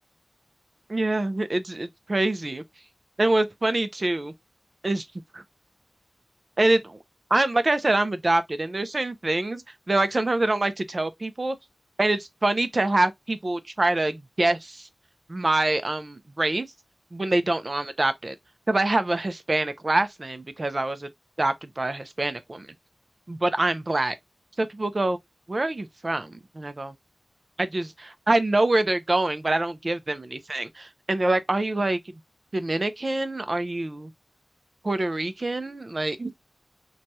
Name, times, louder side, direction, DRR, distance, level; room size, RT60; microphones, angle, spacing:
voice 1, 0.9-2.6 3.2-4.3 4.8-5.1 5.3-5.4 6.6-7.0 7.3-11.6 12.0-14.9 15.3-16.7 17.1-18.3 18.7-21.1 21.4-22.7 23.3-24.1 24.6-25.2 25.5-26.9 27.6-32.0 32.5-34.1 34.8-36.3, right 2 dB, 40° right, 0.5 m, -25 dB
3.0 x 2.3 x 2.7 m
wide cardioid pair, 65°, 0 cm